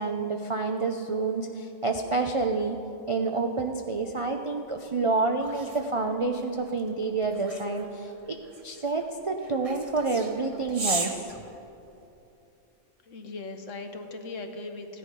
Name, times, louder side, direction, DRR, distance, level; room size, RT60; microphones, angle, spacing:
voice 1, 0.0-2.8 3.1-8.4 8.6-11.2, right 3 dB, 50° right, 3 dB, 0.3 m, -28 dB
sound 1, 4.8-12.2, right 3 dB, 25° right, 1.0 m, -38 dB
voice 2, 13.1-15.0, left 3 dB, 60° left, 6 dB, 1.3 m, -39 dB
15.5 x 10.0 x 5.3 m, 2.8 s
omnidirectional pair, 1.5 m